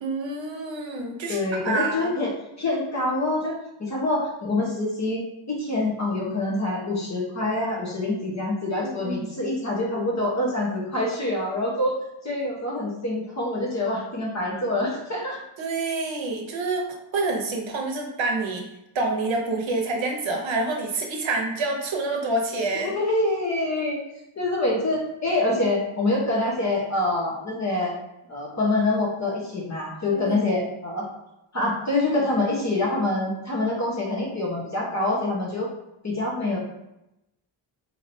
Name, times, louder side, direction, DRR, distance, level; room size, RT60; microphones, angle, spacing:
voice 1, 0.0-2.1 8.8-9.3 15.6-16.9 17.1-18.7 18.9-22.9 30.1-30.4, right 2 dB, 65° right, 1 dB, 0.8 m, -27 dB
voice 2, 1.3-2.3 2.6-3.5 3.8-5.2 5.5-11.9 12.2-15.4 22.8-24.0 24.4-27.9 28.3-31.1 31.5-35.7 36.0-36.6, left 2 dB, 35° left, -3 dB, 1.1 m, -25 dB
5.0 x 2.9 x 2.7 m, 0.88 s
wide cardioid pair, 160°, 49 cm